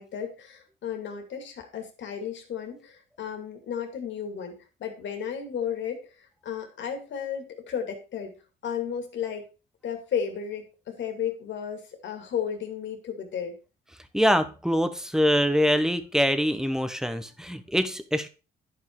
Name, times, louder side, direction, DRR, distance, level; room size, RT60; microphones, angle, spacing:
voice 1, 0.0-8.3 8.6-9.5 9.8-13.5, left 8 dB, 70° left, 4 dB, 2.5 m, -34 dB
voice 2, 14.1-18.3, equal, 5° right, 10 dB, 1.2 m, -24 dB
10.5 x 5.6 x 4.7 m, 0.31 s
cardioid pair, 90°, 20 cm